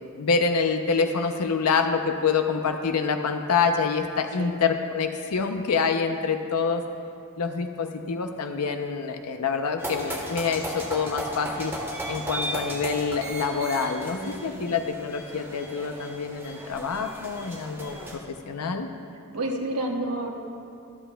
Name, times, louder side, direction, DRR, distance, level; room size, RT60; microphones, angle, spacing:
voice 1, 0.0-6.8 7.4-11.7 12.1-18.9, left 5 dB, 85° left, 5 dB, 0.6 m, -26 dB
sound 1, 9.8-18.1, right 1 dB, 10° right, 1.3 m, -35 dB
voice 2, 14.2-14.8 19.3-20.3, right 1 dB, 90° right, 1 dB, 1.2 m, -30 dB
24.0 x 8.1 x 2.2 m, 2.5 s
head